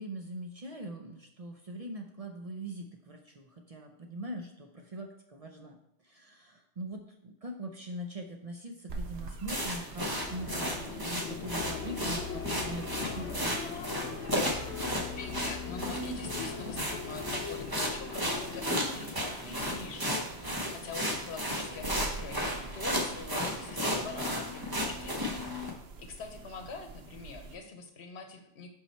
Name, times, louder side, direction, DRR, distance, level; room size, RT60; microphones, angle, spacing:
voice 1, 0.0-5.8 6.0-13.6, right 1 dB, 40° right, 2 dB, 0.6 m, -42 dB
sound 1, 8.9-27.5, right 3 dB, 70° right, 1.0 m, -47 dB
sound 2, 9.5-25.7, equal, 20° right, 1.0 m, -34 dB
sound 3, 9.8-19.2, left 7 dB, 90° left, 1.0 m, -41 dB
voice 2, 15.2-28.7, left 3 dB, 75° left, 5 dB, 1.1 m, -44 dB
5.6 x 5.6 x 4.3 m, 0.78 s
omnidirectional pair, 1.1 m